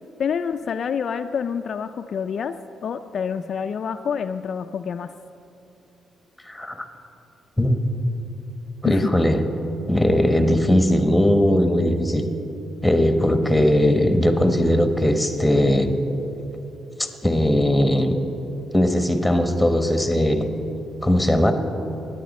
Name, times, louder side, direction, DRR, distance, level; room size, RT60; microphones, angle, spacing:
voice 1, 0.2-2.5 2.8-5.1 8.9-9.1, left 7 dB, 55° left, 8 dB, 0.3 m, -27 dB
voice 2, 6.5-6.9 7.6-7.8 8.8-9.4 9.9-12.2 12.8-15.9 17.0-18.1 18.7-20.5 21.0-21.5, left 1 dB, 5° left, 6 dB, 1.1 m, -19 dB
17.0 x 9.8 x 4.2 m, 2.9 s
cardioid pair, 90°, 0 cm